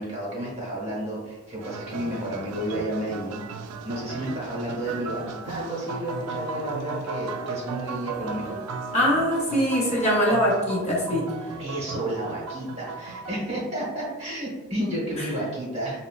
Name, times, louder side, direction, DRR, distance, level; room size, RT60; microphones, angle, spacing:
voice 1, 0.0-3.4 3.8-8.6 11.6-16.0, right 1 dB, 30° right, -5 dB, 1.0 m, -31 dB
sound 1, 1.6-13.4, right 4 dB, 90° right, 0.3 m, -36 dB
voice 2, 8.9-11.3 15.2-15.3, equal, 30° left, -4 dB, 0.7 m, -22 dB
5.1 x 2.0 x 2.3 m, 1.2 s
head